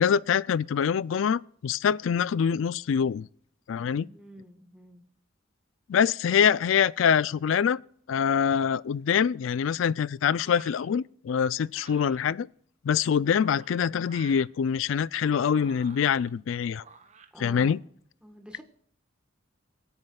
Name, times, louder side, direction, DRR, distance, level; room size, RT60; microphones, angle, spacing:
voice 1, 0.0-3.3 3.7-4.1 5.9-7.8 8.1-12.5 12.8-16.8 17.4-17.8, left 7 dB, 75° left, 0.3 m, -25 dB
voice 2, 3.9-5.0 17.3-17.9 18.2-18.6, right 1 dB, 5° right, 1.2 m, -48 dB
sound 1, 10.4-10.9 11.7-12.2 13.2-14.5 15.2-16.3 16.8-17.3, right 4 dB, 35° right, 1.1 m, -51 dB
22.0 x 9.7 x 2.3 m
head